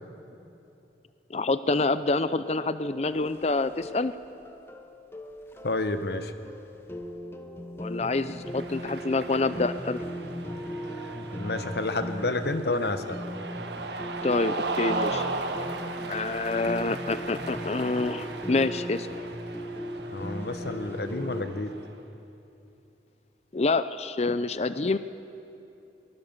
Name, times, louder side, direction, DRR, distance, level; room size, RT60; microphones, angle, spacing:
voice 1, 1.3-4.1 7.8-10.0 14.2-15.2 16.1-19.1 23.5-25.0, left 3 dB, 35° left, 13 dB, 0.5 m, -27 dB
sound 1, 2.5-21.4, equal, 15° left, 1.0 m, -38 dB
voice 2, 5.6-6.3 11.1-13.2 20.1-21.8, left 2 dB, 65° left, 9 dB, 1.1 m, -30 dB
Cheering, 8.4-21.9, right 3 dB, 75° right, 1.5 m, -37 dB
23.0 x 20.5 x 7.3 m, 2.9 s
head